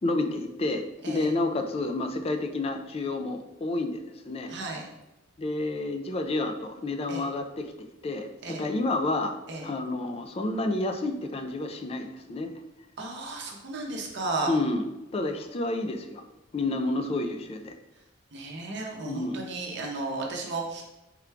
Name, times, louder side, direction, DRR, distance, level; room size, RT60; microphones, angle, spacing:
voice 1, 0.0-4.5 5.4-9.3 9.6-12.5 14.5-14.9 15.1-16.2 16.5-17.7 19.1-19.4, left 2 dB, 30° left, 6 dB, 0.3 m, -30 dB
voice 2, 4.5-4.8 7.1-7.2 8.4-8.7 9.5-9.7 13.0-14.5 18.3-20.8, right 2 dB, 60° right, 0 dB, 0.7 m, -34 dB
3.7 x 2.3 x 4.4 m, 0.98 s
head